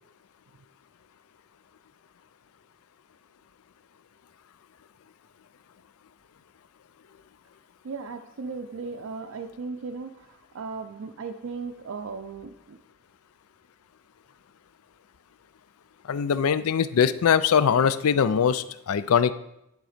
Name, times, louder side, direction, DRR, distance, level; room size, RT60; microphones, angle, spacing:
voice 1, 7.8-12.8, right 4 dB, 60° right, 5 dB, 0.4 m, -36 dB
voice 2, 16.1-19.3, left 7 dB, 70° left, 15 dB, 0.4 m, -22 dB
10.5 x 3.9 x 5.0 m, 0.83 s
head